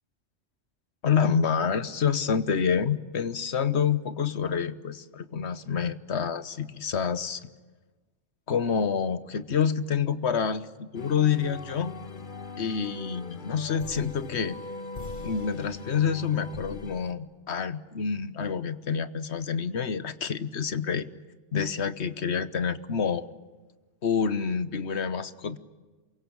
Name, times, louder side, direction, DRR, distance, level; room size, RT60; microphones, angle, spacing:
voice 1, 1.0-7.5 8.5-11.9 12.6-14.6 15.2-21.1 21.5-23.3 24.0-25.6, left 6 dB, 65° left, 13 dB, 1.4 m, -27 dB
sound 1, 10.9-17.1, left 3 dB, 45° left, 1.3 m, -40 dB
27.5 x 23.5 x 8.7 m, 1.3 s
omnidirectional pair, 1.2 m